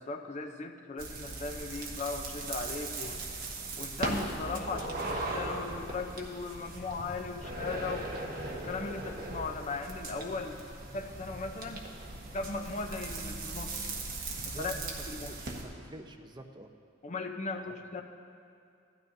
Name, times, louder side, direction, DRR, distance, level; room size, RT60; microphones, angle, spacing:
voice 1, 0.0-3.2 3.8-8.1 8.6-11.8 12.3-13.9 14.5-14.7 15.1-15.4 17.0-18.0, left 3 dB, 40° left, 4 dB, 0.6 m, -38 dB
sound 1, 1.0-15.6, right 2 dB, 50° right, 1.3 m, -39 dB
voice 2, 14.5-14.9 15.2-16.7 17.7-17.8, right 1 dB, 25° right, 4 dB, 0.6 m, -47 dB
16.0 x 12.5 x 2.7 m, 2.4 s
head